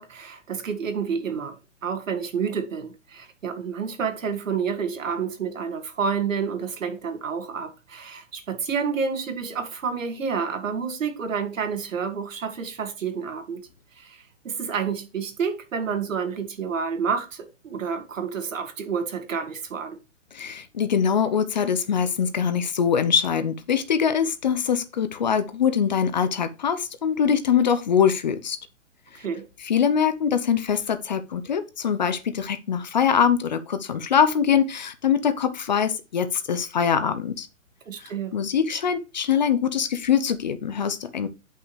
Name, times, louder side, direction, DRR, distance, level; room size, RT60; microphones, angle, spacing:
voice 1, 0.0-1.6 1.8-13.6 14.0-20.0 29.1-29.4 37.9-38.4, right 6 dB, 80° right, 2.1 m, -29 dB
voice 2, 20.3-28.6 29.6-37.5 38.0-41.3, left 7 dB, 35° left, 0.6 m, -23 dB
9.5 x 5.6 x 3.2 m
hypercardioid pair, 165°, 38 cm